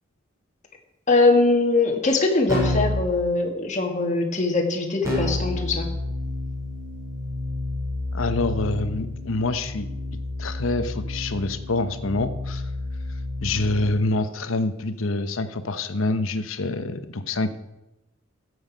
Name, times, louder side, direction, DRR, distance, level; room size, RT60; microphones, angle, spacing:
voice 1, 1.1-5.9, left 3 dB, 35° left, 2 dB, 1.7 m, -21 dB
Keyboard (musical), 2.5-3.1 5.0-13.9, left 2 dB, 15° right, 3.5 m, -30 dB
voice 2, 8.1-9.9 10.4-12.6 13.4-17.5, left 2 dB, 85° left, 11 dB, 0.9 m, -26 dB
14.5 x 8.0 x 5.2 m, 0.95 s
head